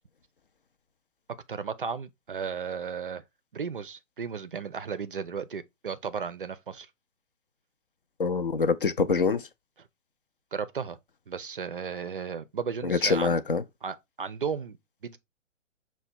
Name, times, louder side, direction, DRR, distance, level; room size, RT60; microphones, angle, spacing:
voice 1, 1.5-3.2 3.5-6.9 10.5-11.0 11.3-13.4 13.8-14.8 15.0-15.2, right 6 dB, 45° right, 0.4 m, -34 dB
voice 2, 8.2-9.5 12.8-13.6, left 5 dB, 45° left, 0.4 m, -25 dB
5.7 x 2.2 x 4.2 m
figure-of-eight pair, 130°, 39 cm